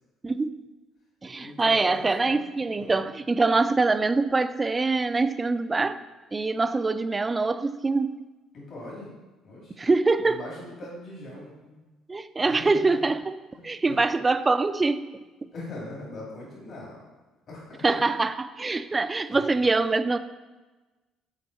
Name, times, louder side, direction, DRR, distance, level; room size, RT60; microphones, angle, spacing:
voice 1, 0.2-0.6 1.2-6.0 6.3-8.2 9.8-10.4 12.1-13.4 13.6-15.1 15.4-15.5 17.8-20.2, right 3 dB, 25° right, 12 dB, 0.3 m, -24 dB
voice 2, 1.3-2.4 2.8-3.0 8.5-9.1 9.4-9.8 10.2-11.8 12.4-13.0 13.5-14.0 15.5-17.0 17.5-18.0 19.3-19.4, left 2 dB, 55° left, -5 dB, 2.2 m, -41 dB
6.9 x 4.2 x 4.0 m, 1.2 s
supercardioid pair, 70°, 0 cm